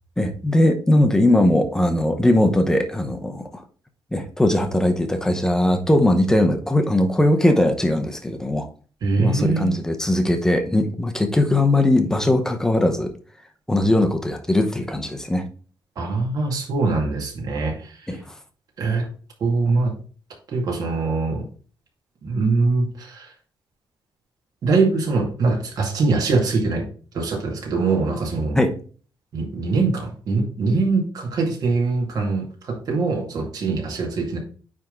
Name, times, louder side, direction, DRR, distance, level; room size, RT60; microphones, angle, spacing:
voice 1, 0.2-3.6 4.1-8.7 9.2-13.1 13.7-15.4 18.1-18.2 28.5-28.7, left 1 dB, 5° left, 6 dB, 0.8 m, -19 dB
voice 2, 9.0-9.8 16.0-18.0 18.8-19.0 19.4-19.9 20.5-21.4 22.2-23.3 24.6-26.9 27.1-28.6 29.3-34.4, right 3 dB, 50° right, 0 dB, 2.3 m, -22 dB
9.2 x 3.7 x 3.9 m, 0.40 s
cardioid pair, 175°, 8 cm